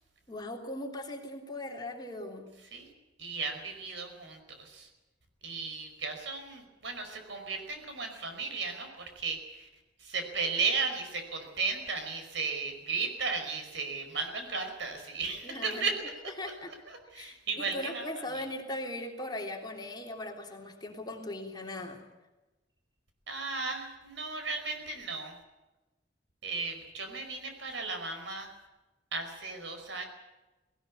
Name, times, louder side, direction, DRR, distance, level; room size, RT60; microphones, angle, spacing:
voice 1, 0.3-2.5 15.4-15.8 16.4-16.7 17.1-22.0, left 1 dB, 25° left, 1 dB, 3.4 m, -39 dB
voice 2, 3.2-4.9 5.4-9.7 10.0-15.9 16.7-18.1 23.3-25.4 26.4-28.5 29.1-30.1, right 4 dB, 75° right, 5 dB, 5.1 m, -35 dB
19.5 x 18.5 x 8.5 m, 1.1 s
head